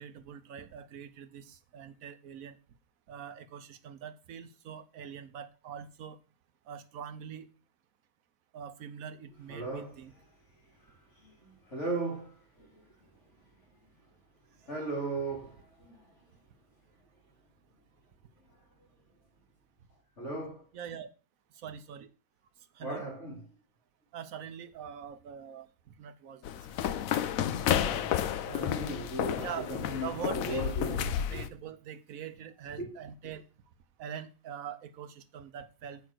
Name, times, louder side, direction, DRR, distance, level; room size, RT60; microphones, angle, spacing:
voice 1, 0.0-2.6 3.1-6.2 6.7-7.5 8.5-10.1 20.7-21.1 21.6-22.1 22.8-23.0 24.1-25.7 26.0-26.4 26.7-27.2 28.5-28.8 29.4-29.7 30.0-33.4 34.0-36.0, right 8 dB, 85° right, 1.2 m, -43 dB
voice 2, 9.5-10.0 11.2-12.8 14.6-16.1 20.2-20.7 22.8-23.4 27.6-31.4 32.8-32.9, right 2 dB, 60° left, 2.8 m, -37 dB
sound 1, 26.4-31.5, left 10 dB, 85° left, 1.0 m, -31 dB
7.3 x 5.2 x 6.1 m
omnidirectional pair, 1.4 m